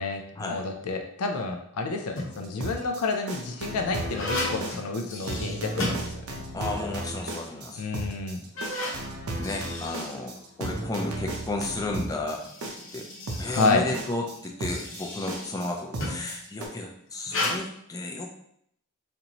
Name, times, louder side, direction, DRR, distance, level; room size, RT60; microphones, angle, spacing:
voice 1, 0.0-6.4 7.8-8.4 13.6-13.8, left 3 dB, 80° left, 4 dB, 0.5 m, -29 dB
sound 1, 1.9-2.6 3.2-6.7 7.0-7.1 7.8-7.9 8.4-10.9 12.1-16.4 17.2-17.6, left 2 dB, 60° left, 0.9 m, -35 dB
sound 2, 2.4-16.7, right 2 dB, 75° right, 0.7 m, -35 dB
voice 2, 6.5-7.8 9.4-10.3 10.6-12.4 12.9-13.1 13.4-18.4, left 2 dB, 15° left, 0 dB, 0.4 m, -33 dB
4.3 x 2.6 x 2.9 m, 0.71 s
head